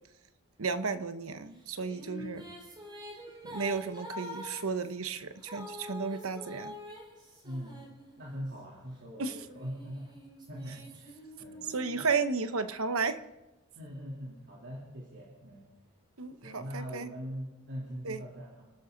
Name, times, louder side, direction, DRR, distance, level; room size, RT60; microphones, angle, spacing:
voice 1, 0.6-2.4 3.5-6.7 9.2-9.4 11.7-13.2 16.2-17.1 18.0-18.2, right 4 dB, 75° right, 10 dB, 1.0 m, -33 dB
sound 1, 1.6-8.5 9.2-12.9, left 1 dB, 20° right, 4.1 m, -46 dB
voice 2, 7.4-7.8 8.2-12.0 13.7-15.7 16.4-18.6, equal, 55° right, -4 dB, 3.4 m, -42 dB
29.0 x 12.5 x 4.0 m, 1.0 s
head